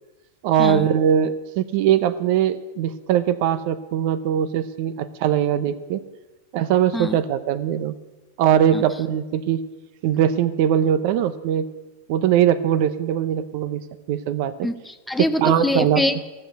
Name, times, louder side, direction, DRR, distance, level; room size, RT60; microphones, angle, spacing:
voice 1, 0.4-6.0 6.5-7.9 8.4-9.6 10.0-11.7 12.1-13.8 14.1-14.7 15.4-16.0, right 9 dB, 55° right, 14 dB, 0.8 m, -21 dB
voice 2, 14.6-16.3, left 2 dB, 5° left, 10 dB, 0.7 m, -24 dB
13.5 x 6.5 x 8.1 m, 1.2 s
hypercardioid pair, 115°, 0 cm